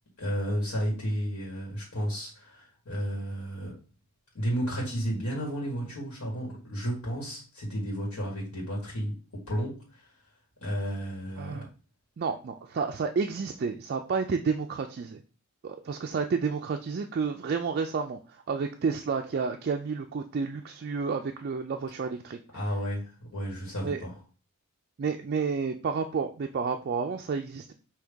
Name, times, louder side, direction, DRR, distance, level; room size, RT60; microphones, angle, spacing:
voice 1, 0.2-3.8 4.3-10.1 10.6-11.6 22.5-24.2, equal, 80° left, 1.8 m, -32 dB
voice 2, 11.4-11.7 12.2-15.2 15.6-22.4 23.8-24.0 25.0-27.7, right 5 dB, 45° right, 0.3 m, -30 dB
5.4 x 2.8 x 3.4 m
head